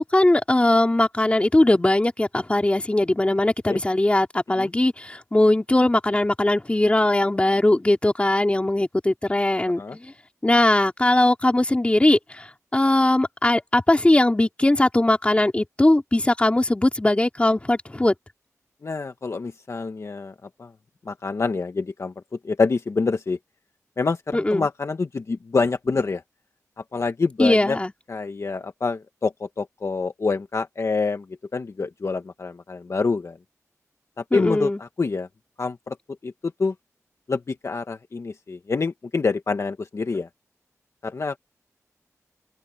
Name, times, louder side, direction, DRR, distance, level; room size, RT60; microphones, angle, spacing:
voice 1, 0.0-10.1 10.4-18.1 24.3-24.7 27.4-27.9 34.3-34.8, left 1 dB, 20° left, 2.8 m, -20 dB
voice 2, 18.8-20.3 20.6-20.7 21.0-22.1 22.4-23.4 24.0-26.2 26.9-27.8 28.1-31.2 31.5-33.4 34.2-35.3 35.6-36.0 36.2-36.3 36.6-36.7 37.3-40.3 41.0-41.4, left 4 dB, 55° left, 1.5 m, -26 dB
open air
wide cardioid pair, 70°, 6 cm